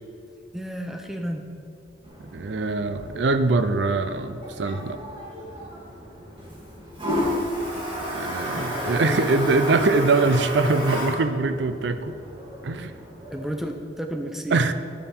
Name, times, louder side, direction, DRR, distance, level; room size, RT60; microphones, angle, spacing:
voice 1, 0.5-1.4 8.5-9.3 13.3-14.6, equal, ahead, 4 dB, 0.7 m, -32 dB
Toilet flush, 2.0-13.6, equal, 30° right, 2.4 m, -32 dB
voice 2, 2.3-5.0 8.1-12.2 12.6-12.9 14.5-14.7, right 3 dB, 65° right, 11 dB, 0.5 m, -23 dB
11.5 x 9.0 x 4.4 m, 2.6 s
head